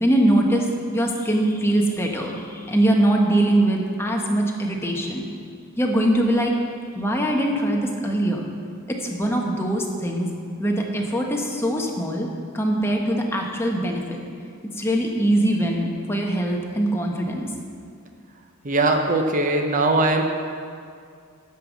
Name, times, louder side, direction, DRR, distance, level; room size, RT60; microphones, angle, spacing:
voice 1, 0.0-5.3 5.8-6.6 6.9-8.5 8.9-10.3 10.6-12.3 12.5-14.2 14.7-17.5, right 1 dB, 10° left, 0 dB, 1.0 m, -22 dB
voice 2, 18.6-20.2, right 2 dB, 40° right, 4 dB, 0.6 m, -20 dB
11.0 x 5.4 x 7.3 m, 2.2 s
head